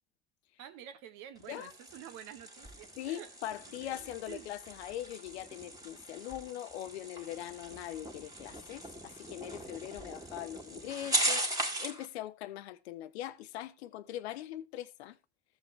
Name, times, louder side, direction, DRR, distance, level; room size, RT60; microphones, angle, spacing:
voice 1, 0.6-3.4 3.8-4.5, right 10 dB, 60° right, 1.3 m, -49 dB
sound 1, 1.4-12.1, right 1 dB, 10° right, 2.0 m, -39 dB
voice 2, 3.0-15.2, left 13 dB, 75° left, 0.8 m, -41 dB
14.5 x 7.2 x 3.1 m
figure-of-eight pair, 55°, 32 cm